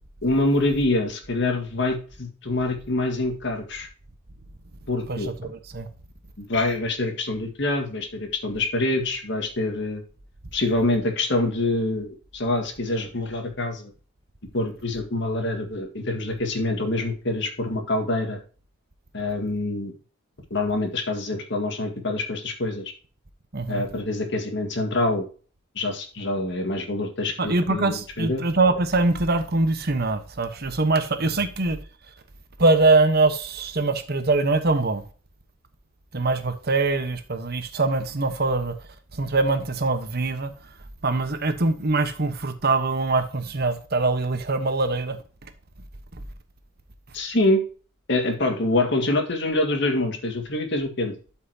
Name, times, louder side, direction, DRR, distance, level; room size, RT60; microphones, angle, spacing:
voice 1, 0.2-3.9 4.9-5.5 6.4-10.0 10.5-13.9 14.5-18.4 19.1-19.9 20.5-22.9 23.7-25.3 25.8-28.4 31.4-31.5 47.1-47.6 48.1-51.1, left 2 dB, 60° left, 1.9 m, -25 dB
voice 2, 5.1-5.9 23.5-23.8 27.4-31.8 32.6-35.0 36.1-38.8 39.1-40.5 41.0-45.5 46.1-46.2, right 3 dB, 50° right, 1.2 m, -23 dB
12.0 x 5.7 x 2.9 m
head